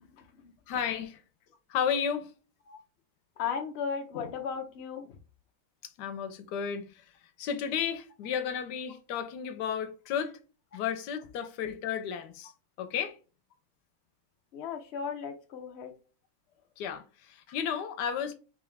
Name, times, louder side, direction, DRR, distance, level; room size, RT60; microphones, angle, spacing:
voice 1, 0.7-1.2 1.7-2.3 6.0-7.0 7.4-10.4 10.7-12.5 12.8-13.2 16.8-18.3, left 8 dB, 90° left, 1.2 m, -33 dB
voice 2, 3.4-5.2 14.5-15.9, left 6 dB, 70° left, 0.6 m, -35 dB
3.7 x 3.5 x 3.2 m
omnidirectional pair, 1.8 m